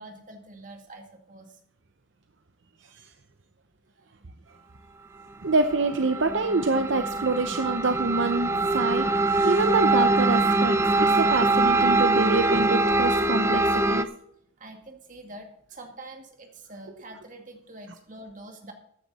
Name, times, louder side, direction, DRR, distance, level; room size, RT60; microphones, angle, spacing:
voice 1, 0.0-1.6 4.2-4.3 4.7-4.8 14.6-18.7, right 2 dB, 40° right, 3 dB, 2.3 m, -45 dB
voice 2, 5.4-14.1, right 3 dB, 60° right, 8 dB, 0.8 m, -26 dB
sound 1, 5.5-14.0, right 2 dB, 15° right, 0.5 m, -23 dB
14.5 x 9.8 x 4.2 m, 0.71 s
head